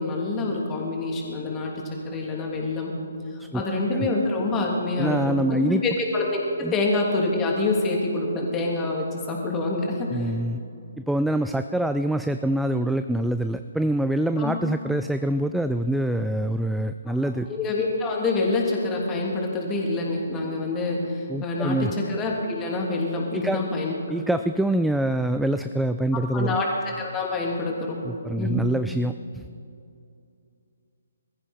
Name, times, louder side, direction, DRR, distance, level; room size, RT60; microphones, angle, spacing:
voice 1, 0.0-2.9 3.3-5.2 5.5-6.4 6.7-10.3 14.4-14.5 17.1-23.9 26.3-26.7 27.0-28.0 28.4-28.6, left 2 dB, 15° left, -1 dB, 3.0 m, -26 dB
voice 2, 5.0-5.8 6.6-6.7 10.1-10.6 11.0-17.5 21.3-21.9 23.3-23.6 24.1-26.6 28.0-29.4, right 1 dB, ahead, 9 dB, 0.3 m, -25 dB
21.5 x 14.5 x 4.4 m, 2.6 s
figure-of-eight pair, 135°, 0 cm